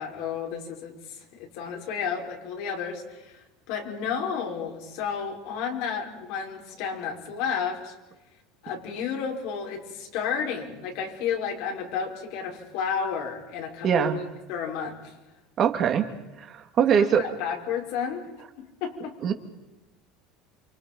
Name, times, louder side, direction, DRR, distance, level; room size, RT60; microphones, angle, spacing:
voice 1, 0.0-3.4 3.7-7.9 8.6-14.2 14.5-15.1 16.9-18.2 18.6-19.1, left 7 dB, 70° left, 1 dB, 6.2 m, -32 dB
voice 2, 13.8-14.2 15.6-16.1 16.4-17.2 19.2-19.3, right 8 dB, 40° right, 6 dB, 2.6 m, -22 dB
29.0 x 26.0 x 5.6 m, 1.0 s
supercardioid pair, 135°, 0 cm